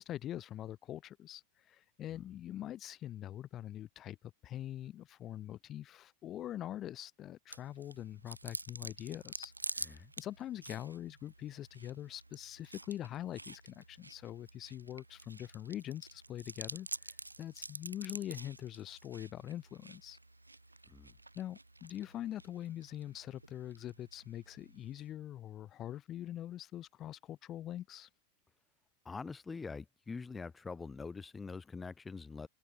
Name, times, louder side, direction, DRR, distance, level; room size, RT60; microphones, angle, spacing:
voice 1, 0.0-20.2 21.4-28.1, left 12 dB, 30° left, 2.3 m, -44 dB
Chewing mastication, 7.5-25.1, right 2 dB, 85° right, 0.8 m, -49 dB
voice 2, 29.0-32.5, left 4 dB, 15° left, 1.2 m, -44 dB
figure-of-eight pair, 90°, 0 cm